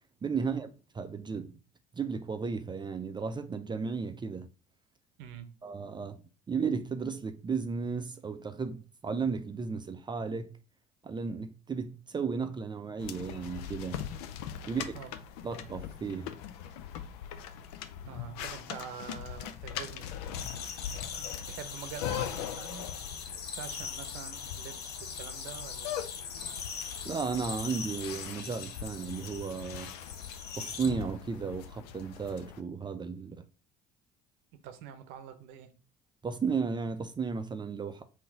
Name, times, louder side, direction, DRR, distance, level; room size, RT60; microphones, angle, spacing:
voice 1, 0.2-0.7 0.9-1.6 1.9-4.5 5.6-6.2 6.5-10.5 11.0-14.0 14.7-14.9 15.4-16.3 27.1-29.9 30.6-33.4 36.2-38.0, right 5 dB, 20° right, 0.4 m, -34 dB
voice 2, 5.2-5.5 14.6-15.1 18.1-20.3 21.2-22.9 23.2-26.0 34.5-35.7, right 9 dB, 70° right, 0.7 m, -46 dB
sound 1, 13.0-32.6, left 9 dB, 75° left, 0.5 m, -41 dB
sound 2, 20.3-30.9, left 6 dB, 55° left, 0.9 m, -41 dB
3.8 x 2.7 x 3.8 m
hypercardioid pair, 65°, 20 cm